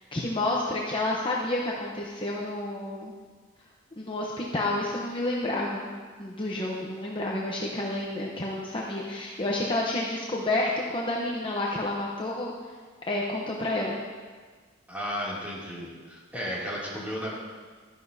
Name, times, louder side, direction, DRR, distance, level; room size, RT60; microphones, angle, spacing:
voice 1, 0.1-3.1 4.0-5.9 6.2-12.5 13.1-14.0, left 2 dB, 25° left, -3 dB, 0.8 m, -29 dB
voice 2, 14.9-17.3, equal, 10° right, -7 dB, 2.6 m, -34 dB
13.0 x 11.0 x 2.7 m, 1.5 s
head